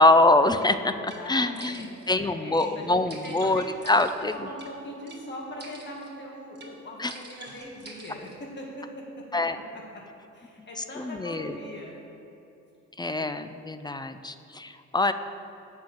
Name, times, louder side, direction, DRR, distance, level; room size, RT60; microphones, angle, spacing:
voice 1, 0.0-0.9 1.3-4.5 7.0-7.1 9.3-9.6 10.8-11.5 13.0-15.1, left 2 dB, 15° left, 10 dB, 0.4 m, -24 dB
sound 1, 0.6-0.7 1.1-1.2 1.5-2.1 2.6-2.7 3.1-4.7 5.1-5.2 5.6-6.1 6.5-6.7 7.1-8.4, right 3 dB, 35° right, 1.9 m, -46 dB
voice 2, 0.8-9.4 9.7-10.0 10.3-12.0, left 1 dB, 35° left, -2 dB, 1.9 m, -41 dB
7.7 x 5.6 x 7.3 m, 2.9 s
cardioid pair, 90°, 30 cm